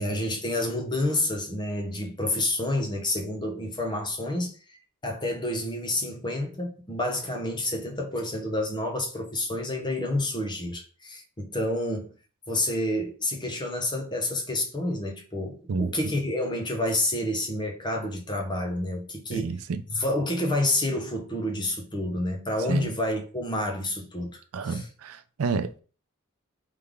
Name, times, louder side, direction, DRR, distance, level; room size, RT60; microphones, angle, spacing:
voice 1, 0.0-4.6 5.0-12.1 12.5-19.5 19.9-24.9, left 1 dB, 20° left, 0.8 m, -29 dB
voice 2, 19.3-19.8 22.7-22.9 24.5-25.8, right 4 dB, 70° right, 0.4 m, -30 dB
3.4 x 3.3 x 3.6 m
head